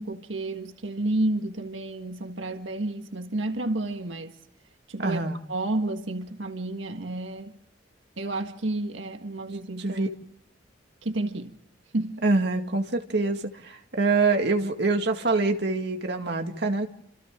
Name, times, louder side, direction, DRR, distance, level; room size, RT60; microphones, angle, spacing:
voice 1, 0.0-4.4 4.9-5.2 5.5-7.5 8.2-10.0 11.0-11.5 11.9-12.2, right 2 dB, 90° right, 1.6 m, -30 dB
voice 2, 5.0-5.4 9.8-10.1 12.2-16.9, right 3 dB, 60° right, 2.0 m, -25 dB
29.0 x 27.0 x 3.8 m
head